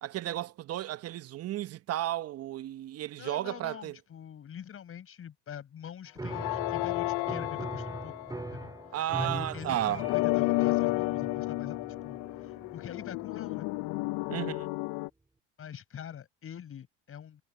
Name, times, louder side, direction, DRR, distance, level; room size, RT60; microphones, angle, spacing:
voice 1, 0.0-4.0 8.9-10.1 14.3-14.7, right 13 dB, 45° right, 1.0 m, -33 dB
voice 2, 3.2-8.3 8.5-11.8 12.0-13.7 15.6-17.4, left 9 dB, 40° left, 7.6 m, -44 dB
Piano, 6.2-14.6, right 2 dB, 10° right, 3.9 m, -42 dB
sound 1, 6.3-8.8 10.0-15.1, left 23 dB, 60° left, 0.6 m, -31 dB
supercardioid pair, 100°, 35 cm